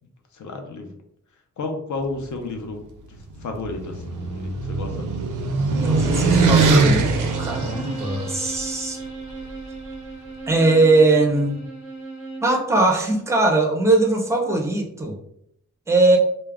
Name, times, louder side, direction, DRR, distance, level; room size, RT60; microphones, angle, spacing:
voice 1, 0.3-1.0 1.6-2.8 3.4-5.3, left 3 dB, 70° left, 4 dB, 0.5 m, -32 dB
sound 1, 3.4-8.6, right 3 dB, 90° right, 0.5 m, -21 dB
voice 2, 5.7-7.1 7.4-9.0 10.5-11.6 12.4-15.2 15.9-16.2, right 2 dB, 10° right, 1 dB, 0.4 m, -20 dB
Bowed string instrument, 6.8-12.6, right 3 dB, 35° left, 0.8 m, -37 dB
2.2 x 2.0 x 3.4 m, 0.72 s
wide cardioid pair, 175°, 30 cm